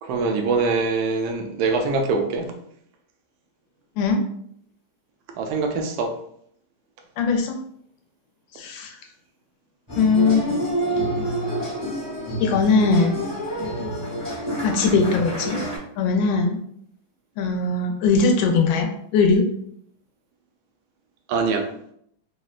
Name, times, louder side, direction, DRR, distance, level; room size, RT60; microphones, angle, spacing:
voice 1, 0.0-2.5 5.4-6.1 21.3-21.7, right 4 dB, 80° right, 4 dB, 1.4 m, -23 dB
voice 2, 7.2-7.6 8.5-8.9 10.0-10.5 12.4-13.2 14.6-15.6 16.0-16.6 17.4-19.4, left 4 dB, 75° left, 2 dB, 1.3 m, -20 dB
sound 1, 9.9-15.8, equal, 40° left, 0.5 m, -27 dB
3.9 x 2.1 x 2.4 m, 0.68 s
omnidirectional pair, 2.4 m